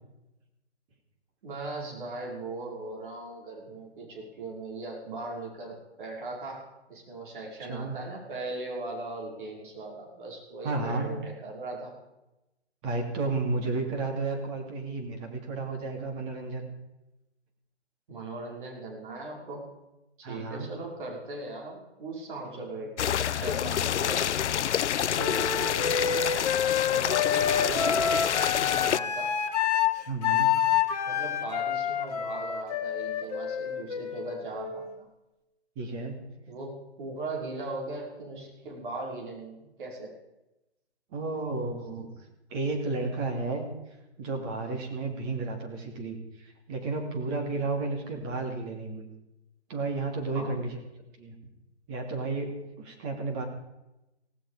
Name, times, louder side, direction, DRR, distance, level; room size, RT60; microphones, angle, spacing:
voice 1, 1.4-12.0 18.1-19.8 20.2-22.9 23.3-24.4 26.9-29.3 31.1-35.1 36.5-40.1 50.3-50.5, right 2 dB, 50° right, -1 dB, 5.6 m, -39 dB
voice 2, 10.6-11.1 12.8-16.7 20.2-20.7 22.5-22.6 25.0-25.4 30.1-30.6 35.8-36.2 41.1-42.1 42.5-43.7 44.2-49.1 49.7-50.8 51.2-51.4 51.9-53.4, right 3 dB, 25° right, 2 dB, 2.8 m, -32 dB
sound 1, 23.0-29.0, left 10 dB, 90° left, 0.5 m, -28 dB
Wind instrument woodwind instrument, 25.1-34.9, left 8 dB, 35° left, 1.8 m, -28 dB
17.0 x 16.5 x 5.0 m, 0.96 s
hypercardioid pair, 155°, 34 cm